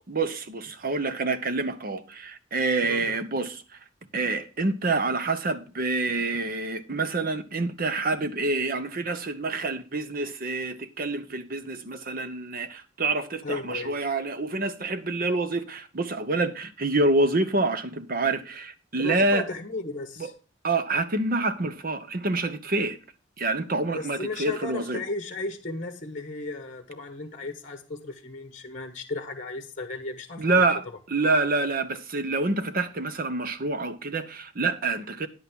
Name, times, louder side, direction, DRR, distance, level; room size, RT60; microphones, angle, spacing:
voice 1, 0.1-3.8 4.1-19.5 20.2-20.3 20.6-23.0 23.4-25.0 30.4-35.3, right 3 dB, 50° right, 1.0 m, -27 dB
voice 2, 13.4-13.9 19.0-20.3 23.9-30.6, left 2 dB, 40° left, 1.1 m, -35 dB
10.0 x 8.5 x 3.7 m
head